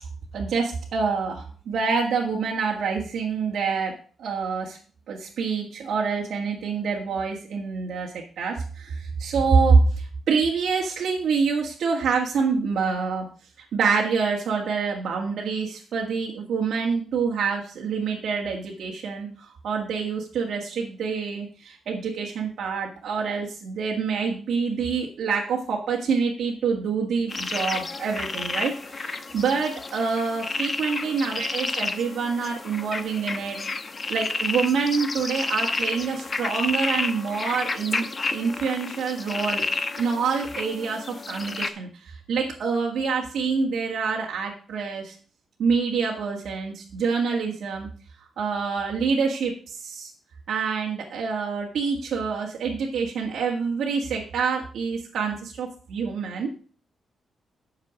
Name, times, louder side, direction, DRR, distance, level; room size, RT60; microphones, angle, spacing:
voice 1, 0.3-4.8 5.1-13.3 13.7-33.6 34.1-38.1 38.3-39.6 40.0-45.2 45.6-47.9 48.4-50.1 50.5-56.5, right 5 dB, 70° right, -2 dB, 1.8 m, -26 dB
sound 1, 27.3-41.7, left 3 dB, 30° left, 0.9 m, -31 dB
9.5 x 6.7 x 5.1 m, 0.40 s
wide cardioid pair, 135°, 0 cm